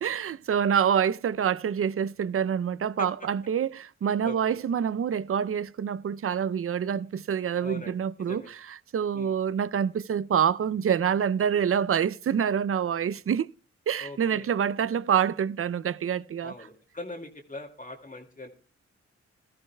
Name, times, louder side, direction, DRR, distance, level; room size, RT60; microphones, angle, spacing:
voice 1, 0.0-8.4 8.9-13.5 13.9-16.5, right 8 dB, 50° right, 0.5 m, -26 dB
voice 2, 3.0-3.3 4.2-4.6 7.6-8.5 9.1-9.3 14.0-14.5 16.4-18.5, left 2 dB, 30° left, 2.3 m, -41 dB
21.0 x 13.5 x 2.2 m
cardioid pair, 55°, 29 cm